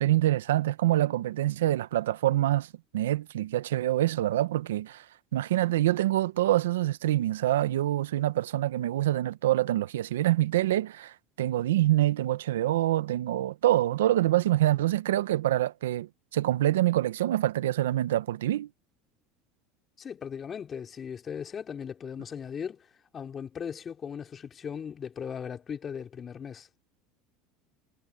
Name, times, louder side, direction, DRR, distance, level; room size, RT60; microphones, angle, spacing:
voice 1, 0.0-2.7 2.9-5.0 5.3-18.7, right 14 dB, 90° right, 0.9 m, -26 dB
voice 2, 20.0-22.9 23.1-26.7, left 7 dB, 35° left, 3.2 m, -38 dB
hypercardioid pair, 95°, 0 cm